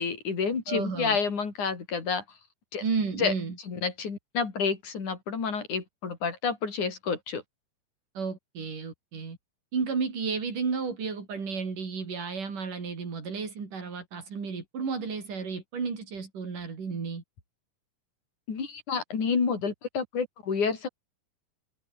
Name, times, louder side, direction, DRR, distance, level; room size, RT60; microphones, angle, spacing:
voice 1, 0.0-2.2 2.7-2.8 3.2-3.3 3.7-7.4 18.5-20.9, left 5 dB, 65° left, 5.5 m, -29 dB
voice 2, 0.7-1.2 2.8-3.6 8.1-9.4 9.7-17.2, right 5 dB, 70° right, 6.5 m, -32 dB
omnidirectional pair, 3.8 m